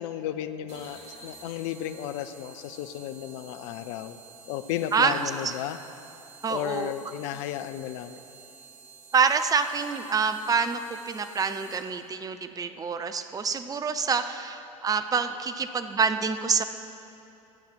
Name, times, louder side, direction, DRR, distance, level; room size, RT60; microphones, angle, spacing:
voice 1, 0.0-4.2 4.5-5.8 6.5-8.2, left 11 dB, 55° left, 12 dB, 0.5 m, -34 dB
sound 1, 0.7-12.1, right 5 dB, 40° right, 2.9 m, -50 dB
voice 2, 4.9-5.5 6.4-6.9 9.1-16.6, right 5 dB, 20° right, 9 dB, 0.6 m, -27 dB
12.0 x 8.4 x 6.1 m, 2.7 s
figure-of-eight pair, 75°, 17 cm